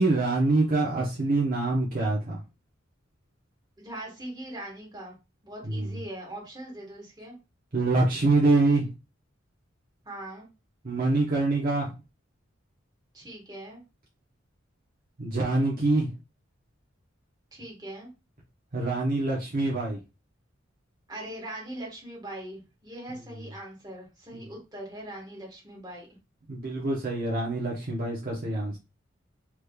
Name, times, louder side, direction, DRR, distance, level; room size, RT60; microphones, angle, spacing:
voice 1, 0.0-2.4 5.6-6.0 7.7-8.9 10.8-11.9 15.2-16.1 18.7-20.0 26.5-28.8, right 2 dB, 45° right, -4 dB, 0.8 m, -25 dB
voice 2, 3.8-5.1 5.4-7.4 10.0-10.5 13.1-13.8 17.5-18.1 21.1-26.1, right 1 dB, 20° right, -2 dB, 1.4 m, -41 dB
3.4 x 3.0 x 2.3 m, 0.28 s
head